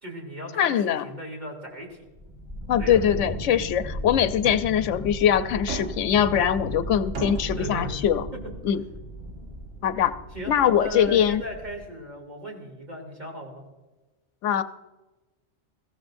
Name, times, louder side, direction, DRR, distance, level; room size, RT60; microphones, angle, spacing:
voice 1, 0.0-2.0 2.8-3.0 7.6-8.0 10.3-13.6, right 1 dB, 40° right, 0 dB, 3.4 m, -37 dB
voice 2, 0.6-1.1 2.7-8.2 8.6-8.8 9.8-10.1 10.5-11.4 14.4-14.6, left 9 dB, 90° left, 11 dB, 1.0 m, -22 dB
sound 1, 2.1-11.8, equal, ahead, 5.0 m, -36 dB
sound 2, 4.4-4.7 5.7-6.2 7.1-7.6, right 4 dB, 85° right, 1.7 m, -34 dB
21.5 x 15.5 x 2.6 m, 1.1 s
omnidirectional pair, 1.2 m